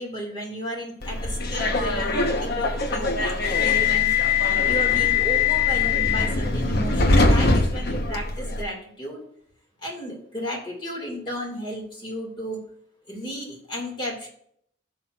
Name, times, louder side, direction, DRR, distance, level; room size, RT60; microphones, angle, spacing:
voice 1, 0.0-4.1 4.5-9.2 9.8-12.6 13.1-14.3, equal, 25° left, 0 dB, 2.1 m, -34 dB
Subway metro underground, 1.0-8.6, left 4 dB, 60° left, 1.0 m, -22 dB
15.5 x 6.2 x 2.4 m, 0.65 s
head